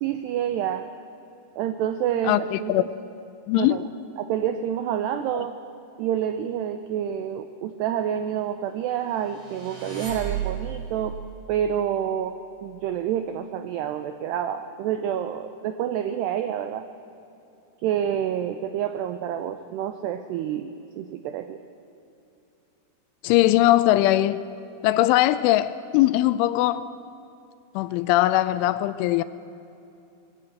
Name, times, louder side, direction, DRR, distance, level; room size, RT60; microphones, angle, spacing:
voice 1, 0.0-0.9 1.6-2.9 3.6-3.9 4.2-5.6 6.0-11.2 11.5-16.9 17.8-21.6, right 9 dB, 90° right, 2.3 m, -28 dB
voice 2, 2.2-2.8 3.5-3.8 23.2-24.5 24.8-26.9 27.8-29.2, left 15 dB, 80° left, 2.9 m, -20 dB
sound 1, 9.2-11.0, right 8 dB, 35° right, 6.0 m, -33 dB
20.5 x 17.0 x 8.0 m
omnidirectional pair, 5.7 m